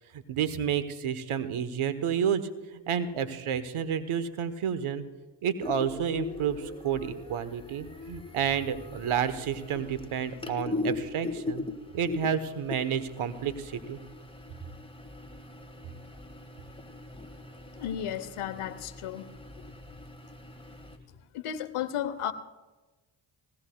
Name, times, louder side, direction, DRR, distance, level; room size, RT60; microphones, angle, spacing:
voice 1, 0.1-5.0 5.4-11.7 11.9-14.0, right 8 dB, 80° right, 12 dB, 1.1 m, -30 dB
sound 1, 5.6-21.0, left 3 dB, 10° left, 1.4 m, -40 dB
voice 2, 17.8-19.2 21.3-22.3, left 10 dB, 90° left, 12 dB, 0.9 m, -33 dB
20.5 x 17.5 x 2.2 m, 1.2 s
supercardioid pair, 40°, 49 cm